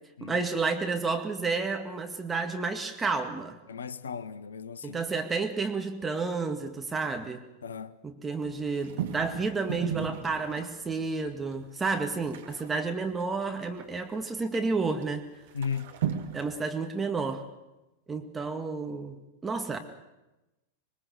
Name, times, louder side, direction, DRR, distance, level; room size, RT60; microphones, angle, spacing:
voice 1, 0.2-3.6 4.8-7.4 8.0-15.2 16.3-17.4 18.1-19.8, right 4 dB, 15° right, 2.1 m, -31 dB
voice 2, 3.7-5.0 7.6-8.0 15.5-15.9, left 6 dB, 70° left, 0.8 m, -36 dB
sound 1, 8.4-11.0 11.5-11.6 11.8-14.0 14.5-14.6 15.0-15.1 15.5-16.6, right 9 dB, 55° right, 2.3 m, -36 dB
25.5 x 22.0 x 6.8 m
figure-of-eight pair, 90°, 0 cm